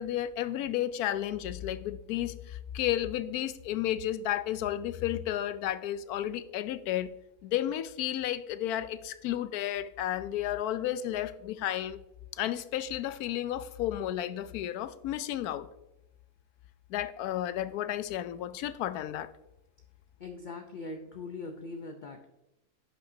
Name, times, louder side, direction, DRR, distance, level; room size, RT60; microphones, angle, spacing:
voice 1, 0.0-7.1 7.4-12.0 12.3-15.7 16.9-19.3, left 12 dB, 85° left, 14 dB, 1.1 m, -32 dB
voice 2, 20.2-22.3, left 3 dB, 45° left, 4 dB, 0.6 m, -41 dB
11.0 x 8.5 x 2.7 m, 0.92 s
omnidirectional pair, 1.6 m